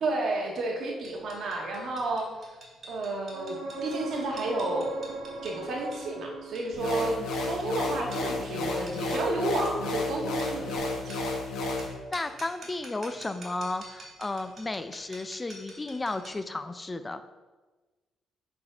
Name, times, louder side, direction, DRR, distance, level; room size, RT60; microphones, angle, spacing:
voice 1, 0.0-2.3 2.9-4.9 5.4-7.2 7.4-11.2, right 2 dB, 60° right, 0 dB, 1.5 m, -31 dB
sound 1, 1.0-16.5, right 2 dB, 45° right, 2.2 m, -49 dB
sound 2, 3.3-7.1 10.8-10.9, right 3 dB, 90° right, 0.9 m, -39 dB
sound 3, 6.7-11.9, left 2 dB, 80° left, 1.4 m, -32 dB
voice 2, 12.1-17.2, left 2 dB, 20° left, 10 dB, 0.4 m, -33 dB
6.9 x 4.2 x 4.9 m, 1.3 s
cardioid pair, 90°, 0 cm